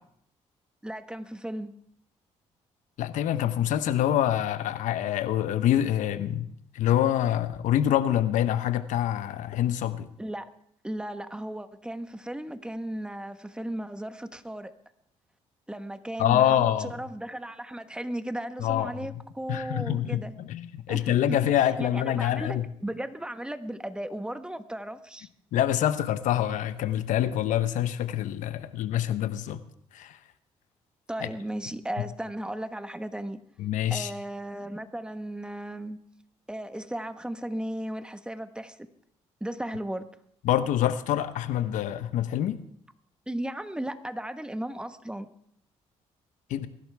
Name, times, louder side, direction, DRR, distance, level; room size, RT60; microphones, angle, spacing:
voice 1, 0.8-1.7 10.2-10.5 10.8-14.7 15.7-20.3 20.9-25.3 31.1-33.4 33.9-36.0 36.5-38.9 39.4-40.1 43.3-45.3, right 1 dB, 5° right, 9 dB, 1.3 m, -35 dB
voice 2, 3.0-6.5 6.7-10.1 16.2-16.9 18.6-18.9 19.5-22.7 25.5-29.6 29.9-30.2 31.2-31.3 33.6-34.1 40.4-42.6 46.5-46.7, left 11 dB, 80° left, 12 dB, 1.0 m, -26 dB
22.5 x 11.5 x 3.5 m, 0.68 s
supercardioid pair, 70°, 13 cm